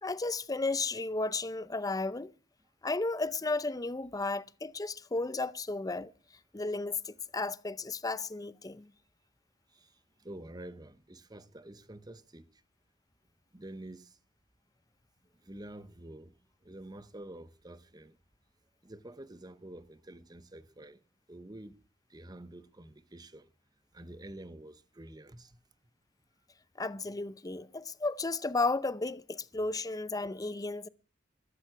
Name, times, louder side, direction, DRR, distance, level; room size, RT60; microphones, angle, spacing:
voice 1, 0.0-2.3 2.8-6.1 6.5-8.9 26.8-30.9, left 3 dB, 20° left, 0.6 m, -33 dB
voice 2, 9.7-12.6 13.5-14.2 15.4-16.3 16.6-18.2 18.8-21.0 21.3-21.8 22.1-23.5 23.9-25.6, right 1 dB, 20° right, 1.0 m, -48 dB
14.5 x 13.0 x 6.0 m
head